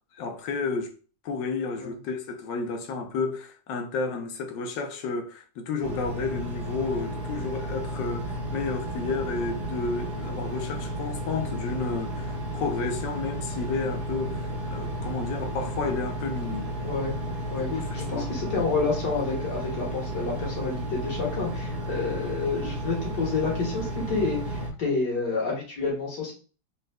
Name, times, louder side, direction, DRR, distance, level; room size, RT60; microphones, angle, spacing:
voice 1, 0.2-0.9 1.2-16.7 17.7-18.3, left 4 dB, 85° left, 1.4 m, -31 dB
Engine, 5.8-24.7, right 1 dB, 65° right, 1.4 m, -33 dB
voice 2, 16.8-17.2 17.5-17.7 17.9-26.3, left 4 dB, 70° left, 2.0 m, -29 dB
4.0 x 3.9 x 2.2 m
omnidirectional pair, 1.9 m